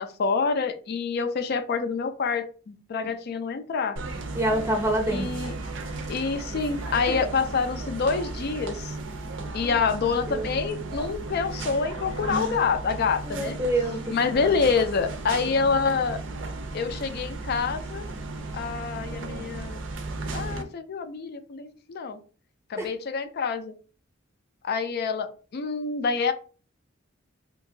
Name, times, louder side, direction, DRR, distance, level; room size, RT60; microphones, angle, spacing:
voice 1, 0.0-4.0 5.1-5.5 6.1-8.9 9.5-13.6 14.1-16.2 16.7-18.1 18.5-19.8 20.3-22.2 22.7-23.7 24.6-26.3, left 5 dB, 55° left, 9 dB, 0.4 m, -27 dB
sound 1, 4.0-20.6, right 2 dB, 70° right, 0.4 m, -35 dB
voice 2, 4.3-5.3 7.1-7.2 9.6-9.7 10.3-10.5 13.3-14.0 22.8-22.9, right 1 dB, 15° right, 2 dB, 0.6 m, -26 dB
2.8 x 2.5 x 2.6 m, 0.39 s
head